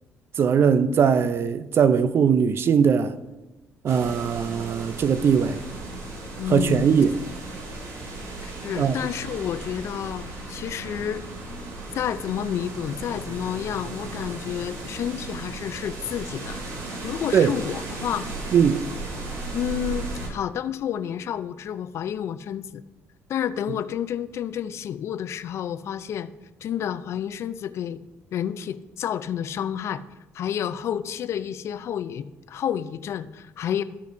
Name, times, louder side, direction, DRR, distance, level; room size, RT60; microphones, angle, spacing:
voice 1, 0.4-3.2 3.8-5.6 6.5-7.2 8.8-8.9 17.3-17.5 18.5-18.8, right 7 dB, 50° right, 0.5 m, -20 dB
sound 1, 3.9-20.3, right 2 dB, 75° right, 2.3 m, -36 dB
voice 2, 6.4-6.9 8.4-11.2 11.9-16.6 17.0-18.3 19.5-22.8 23.3-26.3 26.6-28.0 28.3-30.0 30.3-33.8, left 9 dB, 60° left, 0.4 m, -30 dB
14.0 x 5.2 x 2.6 m
cardioid pair, 95°, 5 cm